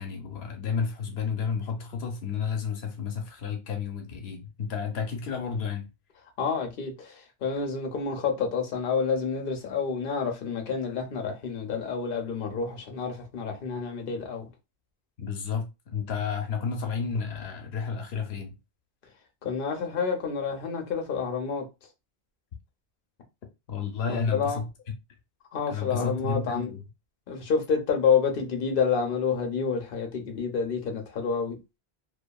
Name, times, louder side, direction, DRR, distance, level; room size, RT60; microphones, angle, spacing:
voice 1, 0.0-5.9 15.2-18.5 23.7-24.7 25.7-26.8, left 6 dB, 85° left, 0.9 m, -31 dB
voice 2, 6.4-14.5 19.4-21.6 24.1-24.6 25.5-26.7 27.3-31.6, left 5 dB, 60° left, 0.9 m, -28 dB
2.7 x 2.5 x 2.2 m
omnidirectional pair, 1.0 m